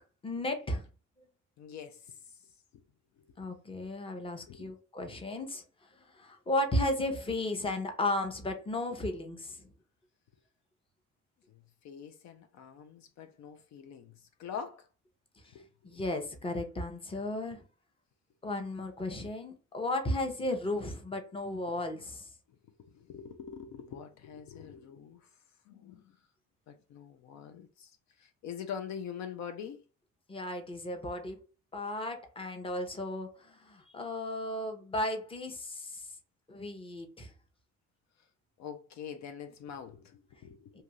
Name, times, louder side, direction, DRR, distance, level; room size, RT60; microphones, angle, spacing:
voice 1, 0.2-0.8 3.4-5.6 6.1-9.7 15.8-17.6 18.4-22.3 30.3-31.4 31.7-36.1 36.5-37.3 40.7-40.8, left 1 dB, 20° left, 0.7 m, -34 dB
voice 2, 1.6-2.4 3.2-3.6 4.1-4.8 11.5-14.9 15.5-16.0 22.8-25.3 25.7-26.2 26.7-29.8 38.6-40.8, left 7 dB, 65° left, 0.5 m, -45 dB
2.7 x 2.4 x 3.0 m
cardioid pair, 90°, 31 cm